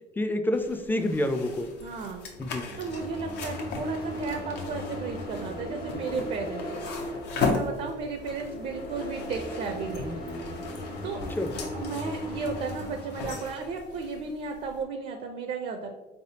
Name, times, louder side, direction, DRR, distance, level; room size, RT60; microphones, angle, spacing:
voice 1, 0.2-1.7 2.4-2.7 11.4-11.5, left 1 dB, 10° left, 7 dB, 0.4 m, -28 dB
sound 1, 0.5-14.8, left 4 dB, 85° left, 0.7 m, -37 dB
voice 2, 1.8-2.3 2.8-6.8 7.4-10.2 11.0-11.2 11.7-15.9, right 4 dB, 55° right, 4 dB, 0.5 m, -34 dB
sound 2, 2.4-13.4, equal, 70° left, 1.4 m, -37 dB
4.0 x 3.4 x 2.8 m, 1.1 s
cardioid pair, 110°, 17 cm